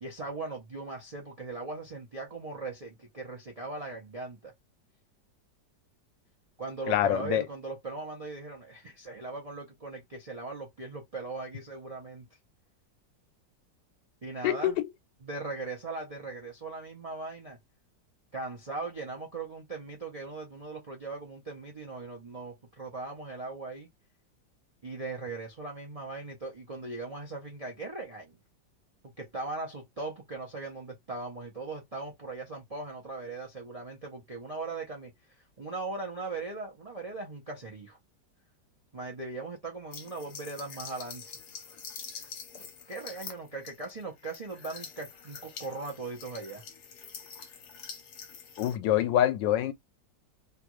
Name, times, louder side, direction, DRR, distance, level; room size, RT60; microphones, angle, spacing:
voice 1, 0.0-4.5 6.6-12.3 14.2-14.8 15.2-17.6 18.3-23.9 24.8-28.4 29.0-38.0 38.9-41.4 42.9-46.6, right 3 dB, 50° right, 0.4 m, -39 dB
voice 2, 6.9-7.4 14.4-14.7 48.6-49.7, left 11 dB, 80° left, 1.3 m, -25 dB
sound 1, 39.9-48.7, left 6 dB, 65° left, 1.3 m, -45 dB
3.2 x 2.4 x 3.0 m
omnidirectional pair, 1.9 m